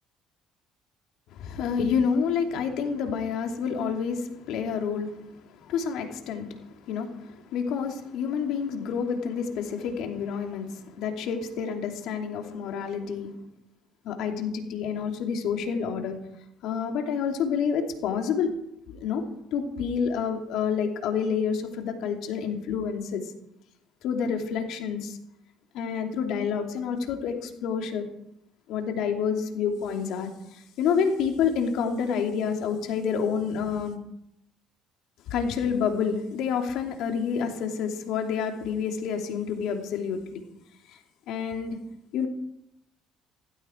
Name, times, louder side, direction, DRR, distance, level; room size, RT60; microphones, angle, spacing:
voice 1, 1.3-13.3 14.0-16.2 16.6-18.5 18.9-19.2 19.5-23.3 24.0-25.2 25.7-28.1 28.7-34.0 35.3-40.4 40.9-41.0 41.3-41.8 42.1-42.3, left 6 dB, 70° left, 3 dB, 2.9 m, -28 dB
16.5 x 15.5 x 4.6 m, 0.78 s
supercardioid pair, 70°, 0 cm